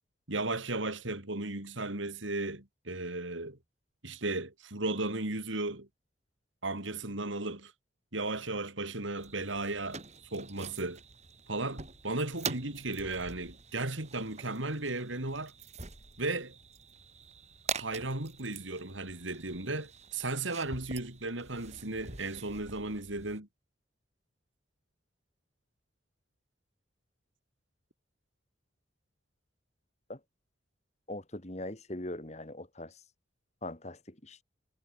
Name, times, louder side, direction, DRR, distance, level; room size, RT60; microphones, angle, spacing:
voice 1, 0.3-3.6 4.0-5.9 6.6-7.7 8.1-10.0 10.3-11.0 11.5-15.5 16.2-16.5 17.7-23.5, right 2 dB, 80° right, 3.9 m, -35 dB
sound 1, 9.2-23.4, right 5 dB, 35° right, 3.6 m, -45 dB
voice 2, 31.1-32.9 33.6-34.4, left 1 dB, 35° left, 2.3 m, -41 dB
head